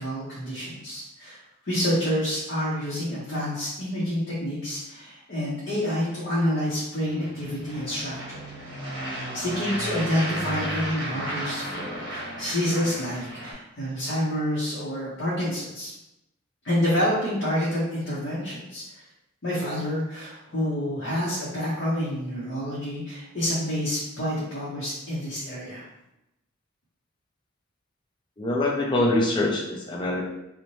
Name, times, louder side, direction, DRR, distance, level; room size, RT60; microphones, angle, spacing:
voice 1, 0.0-1.4 1.6-8.4 9.1-15.9 16.6-18.8 19.4-25.8, equal, 55° left, -8 dB, 0.7 m, -28 dB
sound 1, 7.0-13.5, right 1 dB, 55° right, 0.9 m, -34 dB
voice 2, 28.4-30.2, left 1 dB, 25° left, -2 dB, 0.4 m, -24 dB
2.7 x 2.1 x 3.0 m, 0.88 s
head